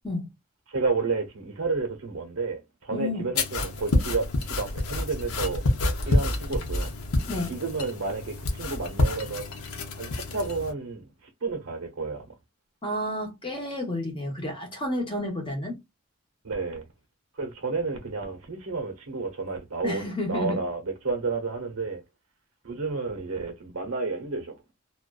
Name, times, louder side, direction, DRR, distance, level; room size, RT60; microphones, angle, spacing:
voice 1, 0.7-5.6 6.0-7.0 7.5-9.5 10.0-11.1 11.4-12.4 16.4-16.8 17.4-22.0 22.6-24.6, right 4 dB, 90° right, 1.0 m, -31 dB
voice 2, 2.9-3.3 7.3-7.5 12.8-15.8 19.8-20.6, left 1 dB, 25° left, 1.0 m, -31 dB
sound 1, 3.4-10.7, left 2 dB, 80° left, 0.7 m, -28 dB
2.5 x 2.2 x 2.3 m
head